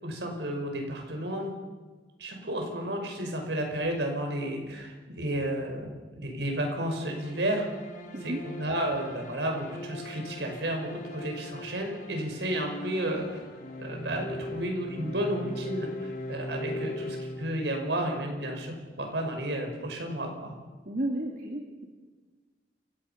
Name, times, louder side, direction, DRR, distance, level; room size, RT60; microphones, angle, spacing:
voice 1, 0.0-1.5 2.2-5.9 6.2-7.7 8.2-13.3 13.8-20.5, right 1 dB, 80° right, 2 dB, 5.7 m, -32 dB
sound 1, 6.9-18.0, left 1 dB, 50° left, 3.3 m, -40 dB
voice 2, 20.9-21.9, right 1 dB, 50° right, 1 dB, 2.5 m, -32 dB
29.5 x 17.0 x 5.8 m, 1.3 s
head